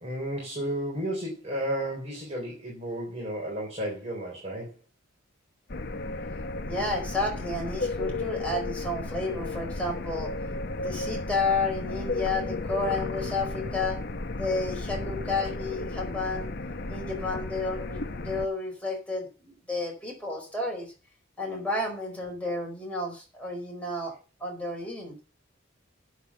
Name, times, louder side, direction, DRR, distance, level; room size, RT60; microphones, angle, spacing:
voice 1, 0.0-4.7 16.9-17.0, right 1 dB, 30° right, -3 dB, 3.8 m, -33 dB
sound 1, 5.7-18.5, left 3 dB, 50° left, 0.9 m, -34 dB
voice 2, 6.7-10.3 10.8-14.0 14.4-16.5 16.9-20.9 21.4-24.1 24.4-25.2, left 2 dB, 5° left, -1 dB, 4.6 m, -31 dB
9.2 x 8.0 x 7.0 m, 0.34 s
head